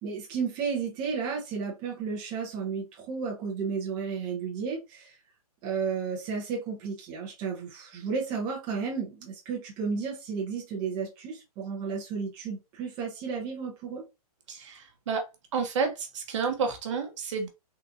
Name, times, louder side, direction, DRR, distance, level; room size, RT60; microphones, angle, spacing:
voice 1, 0.0-5.1 5.6-14.0, right 5 dB, 25° right, 0.8 m, -33 dB
voice 2, 14.5-15.3 15.5-17.5, right 5 dB, 50° right, 1.1 m, -30 dB
3.7 x 2.4 x 2.7 m
hypercardioid pair, 150°, 20 cm